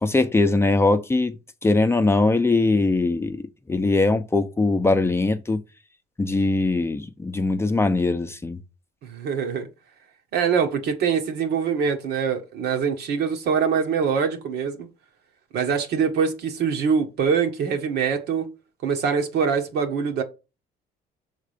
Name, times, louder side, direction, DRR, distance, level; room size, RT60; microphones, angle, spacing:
voice 1, 0.0-5.6 6.2-8.6, left 2 dB, 15° left, 0.6 m, -21 dB
voice 2, 9.0-9.7 10.3-14.9 15.5-18.5 18.8-20.2, right 6 dB, 70° right, 1.5 m, -24 dB
6.7 x 3.7 x 5.0 m
cardioid pair, 110°, 17 cm